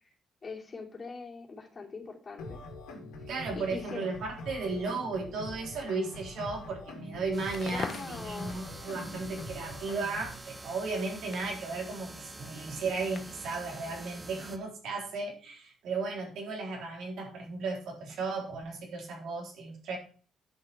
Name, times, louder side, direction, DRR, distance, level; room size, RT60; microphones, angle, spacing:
voice 1, 0.4-2.6 3.5-4.0 7.7-8.6, left 4 dB, 40° left, 0 dB, 3.0 m, -42 dB
sound 1, 2.4-10.4, left 2 dB, 85° left, 2.6 m, -44 dB
voice 2, 3.3-20.0, right 3 dB, 75° right, -1 dB, 3.8 m, -35 dB
sound 2, 7.3-14.6, right 2 dB, 25° right, 1.5 m, -47 dB
Crackle, 7.4-13.6, left 6 dB, 60° left, 1.0 m, -47 dB
10.0 x 6.1 x 4.6 m, 0.40 s
supercardioid pair, 60°, 0 cm